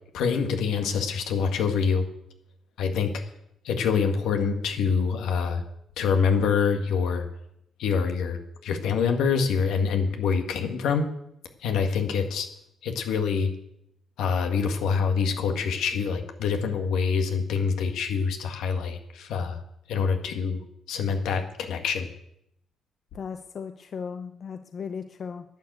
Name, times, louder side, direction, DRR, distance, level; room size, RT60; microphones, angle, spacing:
voice 1, 0.1-2.1 2.8-3.1 3.6-5.6 6.0-7.3 7.8-11.1 11.6-12.5 12.8-13.5 14.2-19.6 19.9-20.6 20.9-22.1, left 6 dB, 85° left, 5 dB, 1.9 m, -25 dB
voice 2, 23.1-25.4, left 6 dB, 50° left, 8 dB, 0.8 m, -36 dB
11.5 x 9.4 x 8.1 m, 0.76 s
cardioid pair, 90°, 0 cm